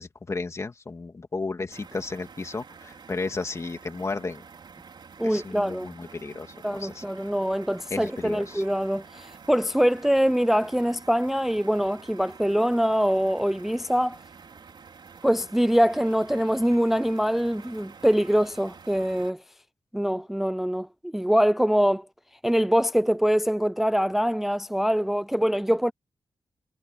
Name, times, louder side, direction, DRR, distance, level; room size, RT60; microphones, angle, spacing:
voice 1, 0.0-4.4 5.2-7.0 7.9-8.6, left 3 dB, 30° left, 2.7 m, -33 dB
sound 1, 1.7-19.3, right 5 dB, 55° right, 4.7 m, -48 dB
voice 2, 5.2-5.9 6.6-14.2 15.2-19.4 19.9-22.1 22.4-25.9, equal, 5° right, 0.3 m, -24 dB
wide cardioid pair, 145°, 9 cm